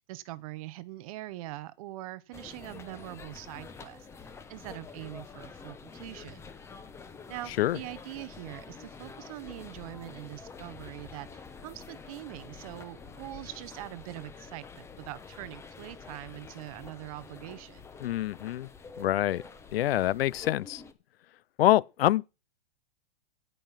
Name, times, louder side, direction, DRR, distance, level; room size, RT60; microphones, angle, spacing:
voice 1, 0.1-4.1 4.5-6.5 7.3-17.8, right 17 dB, 35° right, 0.6 m, -43 dB
sound 1, 2.3-20.9, left 5 dB, 10° left, 0.7 m, -47 dB
voice 2, 18.0-18.7 19.0-19.4 19.7-20.8 21.6-22.3, left 14 dB, 70° left, 0.6 m, -25 dB
16.5 x 5.5 x 5.6 m
hypercardioid pair, 150°, 31 cm